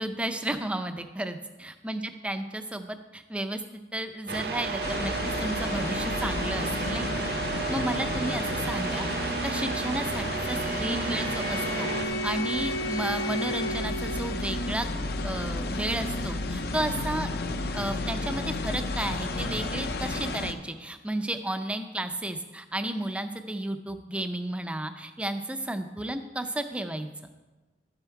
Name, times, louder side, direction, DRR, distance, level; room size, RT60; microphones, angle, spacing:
voice 1, 0.0-3.6 3.9-7.2 7.7-9.1 9.4-14.9 15.2-17.3 17.7-27.1, right 1 dB, 5° right, 8 dB, 0.4 m, -33 dB
sound 1, 4.3-12.1, right 4 dB, 55° right, 0.8 m, -32 dB
sound 2, 4.8-20.5, left 2 dB, 55° left, 0.6 m, -32 dB
Bowed string instrument, 10.0-14.7, equal, 80° left, 0.9 m, -35 dB
11.0 x 7.1 x 4.6 m, 1.2 s
head